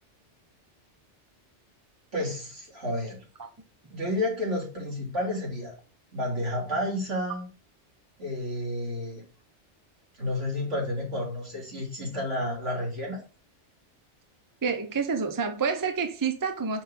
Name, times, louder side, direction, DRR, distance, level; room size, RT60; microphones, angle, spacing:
voice 1, 2.1-3.2 3.9-5.7 6.1-7.5 8.2-9.2 10.2-13.2, left 1 dB, 80° right, 3.4 m, -31 dB
voice 2, 14.6-16.8, right 5 dB, 20° right, 0.6 m, -28 dB
5.2 x 3.9 x 5.6 m
omnidirectional pair, 1.2 m